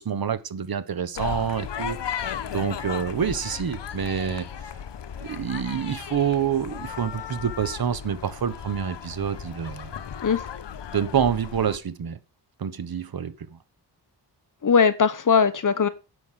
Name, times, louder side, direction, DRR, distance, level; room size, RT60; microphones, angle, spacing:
voice 1, 0.0-4.5 5.2-9.9 10.9-12.2 12.6-13.6, right 8 dB, 55° right, 1.1 m, -27 dB
sound 1, 1.1-11.8, left 8 dB, 80° left, 1.1 m, -35 dB
voice 2, 14.6-15.9, left 6 dB, 45° left, 1.2 m, -19 dB
11.0 x 8.4 x 5.8 m
wide cardioid pair, 175°, 42 cm